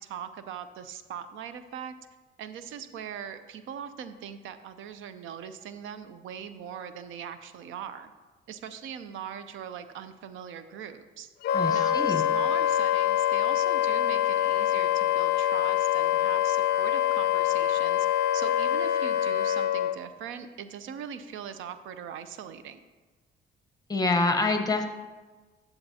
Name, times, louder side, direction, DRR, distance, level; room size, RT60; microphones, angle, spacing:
voice 1, 0.0-1.9 2.4-8.1 8.5-11.3 11.7-18.1 18.3-22.8, right 8 dB, 80° right, 11 dB, 0.5 m, -41 dB
Wind instrument woodwind instrument, 11.4-19.9, left 11 dB, 55° left, 0.4 m, -25 dB
voice 2, 11.5-12.3 23.9-24.9, left 3 dB, 20° left, 6 dB, 0.9 m, -26 dB
11.0 x 7.1 x 2.8 m, 1.3 s
cardioid pair, 90°, 20 cm